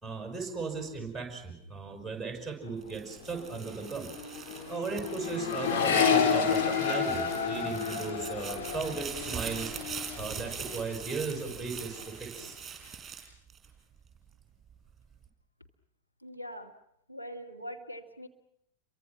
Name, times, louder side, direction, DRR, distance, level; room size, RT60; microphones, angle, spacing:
voice 1, 0.0-4.1 4.7-9.7 10.2-12.6, right 4 dB, ahead, 4 dB, 6.6 m, -37 dB
Accelerating revving vroom, 2.8-3.1 3.3-10.8 11.2-11.8, left 6 dB, 50° left, 3.8 m, -30 dB
sound 1, 2.8-14.2 14.7-15.3, right 7 dB, 15° right, 6.4 m, -43 dB
voice 2, 16.2-16.7 17.1-18.3, equal, 90° left, 3 dB, 1.8 m, -42 dB
29.5 x 23.5 x 6.0 m, 0.75 s
figure-of-eight pair, 90°, 0 cm